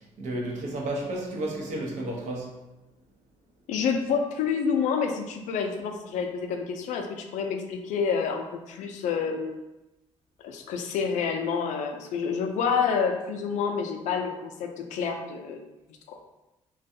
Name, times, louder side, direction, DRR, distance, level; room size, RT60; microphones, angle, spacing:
voice 1, 0.2-2.6, right 1 dB, 70° right, -1 dB, 0.7 m, -32 dB
voice 2, 3.7-9.6 10.4-15.6 16.1-16.2, left 6 dB, 75° left, 4 dB, 0.4 m, -28 dB
2.4 x 2.2 x 2.7 m, 1.0 s
cardioid pair, 80°, 13 cm